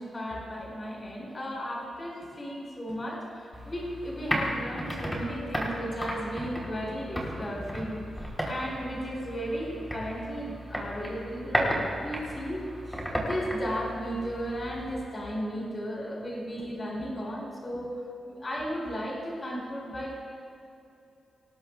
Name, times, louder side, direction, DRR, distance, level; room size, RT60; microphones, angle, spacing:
voice 1, 0.0-18.0 18.3-20.2, equal, 30° left, -3 dB, 4.6 m, -35 dB
sound 1, 3.5-14.9, equal, 5° left, 3.6 m, -34 dB
26.0 x 19.5 x 2.4 m, 2.7 s
wide cardioid pair, 125°, 0 cm